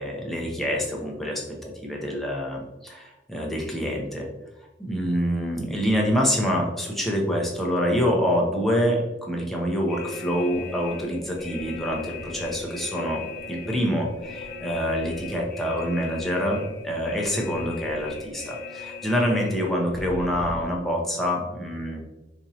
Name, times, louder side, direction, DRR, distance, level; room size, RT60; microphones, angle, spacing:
voice 1, 0.0-4.3 4.8-13.2 13.5-22.0, equal, ahead, -2 dB, 0.6 m, -26 dB
sound 1, 9.9-20.7, left 3 dB, 50° left, 0.5 m, -38 dB
4.2 x 2.6 x 2.7 m, 1.1 s
head